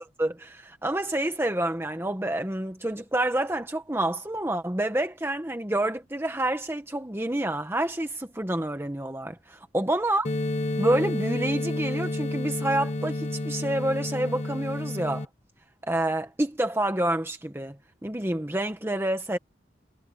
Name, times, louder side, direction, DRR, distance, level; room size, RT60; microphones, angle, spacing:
voice 1, 0.2-10.3 10.8-15.2 15.9-17.8 18.0-19.4, right 1 dB, 15° right, 1.1 m, -28 dB
sound 1, 10.2-15.2, left 2 dB, 40° left, 0.9 m, -30 dB
head